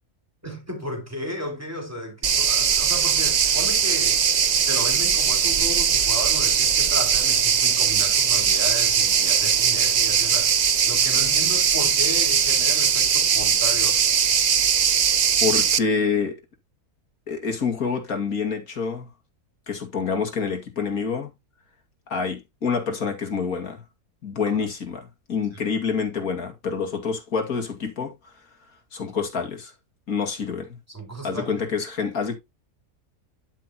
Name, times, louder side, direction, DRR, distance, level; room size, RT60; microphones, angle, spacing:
voice 1, 0.4-4.2 4.7-10.6 10.8-14.0 24.5-24.6 25.5-25.6 30.9-31.6, equal, 10° right, 3.7 m, -34 dB
sound 1, 2.2-15.8, right 7 dB, 75° right, 0.4 m, -20 dB
voice 2, 15.4-16.4 17.3-19.1 19.7-21.3 22.1-23.8 24.2-28.3 28.9-29.7 30.1-30.8 31.2-32.3, left 5 dB, 65° left, 2.7 m, -27 dB
11.0 x 6.0 x 2.9 m
omnidirectional pair, 1.6 m